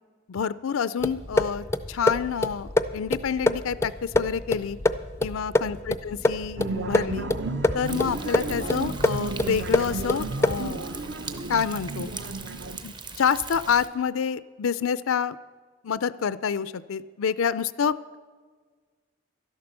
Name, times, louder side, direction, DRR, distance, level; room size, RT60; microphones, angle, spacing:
voice 1, 0.3-4.8 5.2-7.3 7.7-10.8 11.5-12.1 12.8-15.4 15.8-18.2, left 7 dB, 80° left, 16 dB, 0.4 m, -28 dB
sound 1, 1.0-10.8, left 2 dB, 15° left, 0.4 m, -27 dB
sound 2, 6.6-12.8, right 3 dB, 55° right, 0.8 m, -33 dB
Thunder, 7.8-13.9, right 4 dB, 20° right, 0.7 m, -40 dB
12.0 x 11.0 x 6.7 m, 1.5 s
head